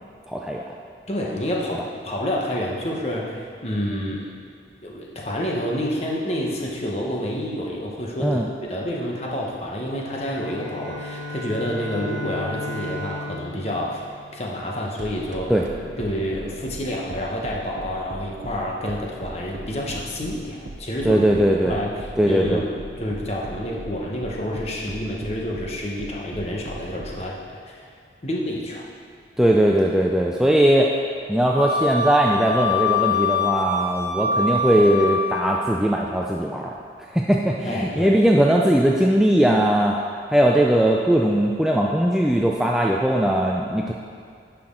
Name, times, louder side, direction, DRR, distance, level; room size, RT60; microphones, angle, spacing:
voice 1, 0.3-0.6 8.2-8.5 15.5-15.7 21.0-21.8 22.2-22.6 29.4-30.9 31.3-36.7 37.1-40.0 40.3-43.9, right 1 dB, 5° right, -1 dB, 0.3 m, -19 dB
voice 2, 1.1-4.3 4.8-14.1 14.3-15.5 16.0-21.2 21.6-22.7 23.0-27.4 27.7-27.9 28.2-28.8 37.6-38.1, equal, 35° left, -2 dB, 1.1 m, -28 dB
Bowed string instrument, 10.3-15.0, left 1 dB, 70° left, 1.0 m, -35 dB
sound 1, 15.0-27.2, right 1 dB, 90° right, 0.7 m, -38 dB
Wind instrument woodwind instrument, 31.5-35.6, left 3 dB, 85° left, 1.5 m, -24 dB
10.0 x 6.0 x 3.8 m, 2.2 s
head